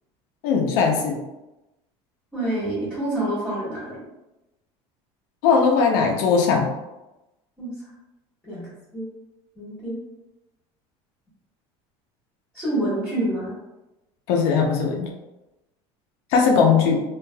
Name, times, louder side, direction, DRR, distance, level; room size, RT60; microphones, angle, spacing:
voice 1, 0.4-1.2 5.4-6.7 14.3-15.1 16.3-17.0, left 5 dB, 80° left, 2 dB, 0.6 m, -19 dB
voice 2, 2.3-4.0 7.6-7.9 8.4-9.1 9.6-10.0 12.5-13.5, right 1 dB, 5° left, -11 dB, 1.2 m, -27 dB
3.2 x 2.4 x 2.2 m, 0.98 s
cardioid pair, 155°, 13 cm